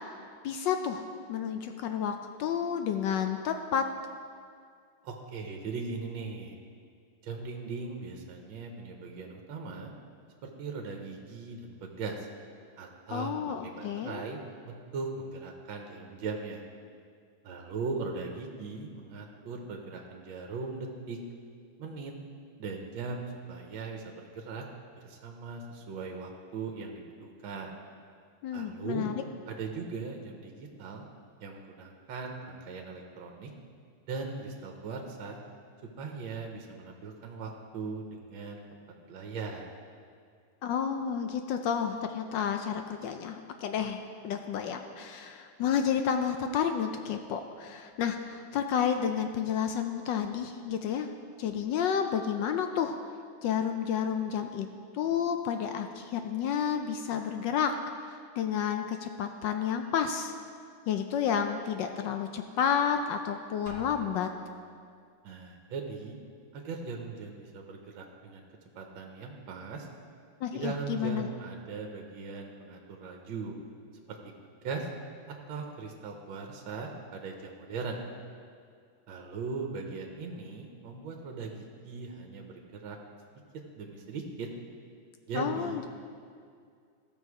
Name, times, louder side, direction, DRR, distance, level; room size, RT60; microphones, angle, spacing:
voice 1, 0.4-3.8 13.1-14.2 28.4-29.1 40.6-51.1 51.4-53.0 53.4-54.7 54.9-57.7 58.4-60.3 60.9-64.3 70.4-71.3 85.3-85.8, left 8 dB, 75° left, 6 dB, 1.1 m, -30 dB
voice 2, 5.0-6.5 7.2-9.9 10.4-12.3 12.8-16.6 17.4-21.2 21.8-22.1 22.6-24.6 25.0-27.8 28.5-29.1 29.5-31.1 31.4-33.5 34.1-35.4 36.0-38.6 39.1-39.7 65.2-66.2 66.5-68.4 68.7-69.9 70.5-73.5 74.1-74.2 74.4-74.9 75.5-78.0 79.1-83.0 83.8-84.5 85.3-85.9, right 4 dB, 70° right, 2 dB, 1.6 m, -39 dB
Drum, 63.7-64.9, right 1 dB, 35° right, 0.9 m, -48 dB
14.5 x 6.4 x 4.8 m, 2.2 s
omnidirectional pair, 2.3 m